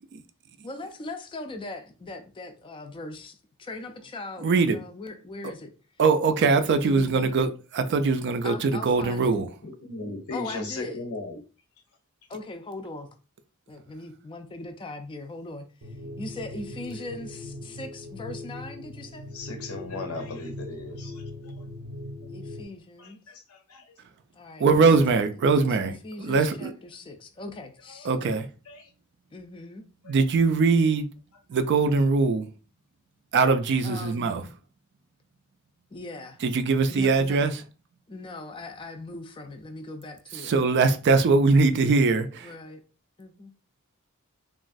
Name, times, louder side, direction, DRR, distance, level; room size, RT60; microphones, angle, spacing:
voice 1, 0.6-5.7 6.5-7.3 8.4-9.3 10.3-11.0 12.3-13.1 13.7-15.7 16.2-19.3 22.3-23.2 24.3-24.8 26.0-28.1 29.3-29.8 33.8-34.4 35.9-36.4 36.9-37.4 38.1-40.5 42.4-42.8 43.2-43.5, left 2 dB, 25° left, 0.4 m, -40 dB
voice 2, 4.4-4.8 5.4-5.5 6.0-9.6 24.6-26.7 28.0-28.5 30.0-31.1 31.5-32.5 33.3-34.6 36.4-37.6 40.3-42.6, right 4 dB, 55° right, 0.4 m, -22 dB
voice 3, 9.6-11.4 19.3-21.6 23.0-23.9 27.9-28.1 28.7-28.9 30.0-30.1, left 3 dB, 80° left, 0.7 m, -38 dB
sound 1, 15.8-22.6, left 1 dB, 85° right, 0.7 m, -40 dB
3.0 x 2.3 x 2.5 m
head